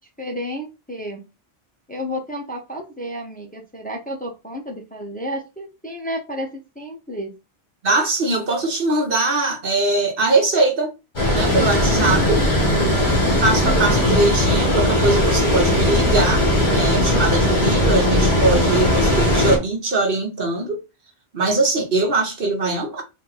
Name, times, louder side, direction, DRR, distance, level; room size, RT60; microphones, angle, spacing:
voice 1, 0.2-1.2 1.9-6.5 6.7-7.3 11.9-12.4 12.7-13.0, equal, 10° left, 0.8 m, -31 dB
voice 2, 7.8-10.9 11.3-12.4 13.4-20.8 21.3-23.0, right 2 dB, 60° right, 1.1 m, -21 dB
Water, 11.2-19.6, left 1 dB, 45° left, 1.7 m, -18 dB
4.2 x 2.8 x 3.9 m
omnidirectional pair, 1.1 m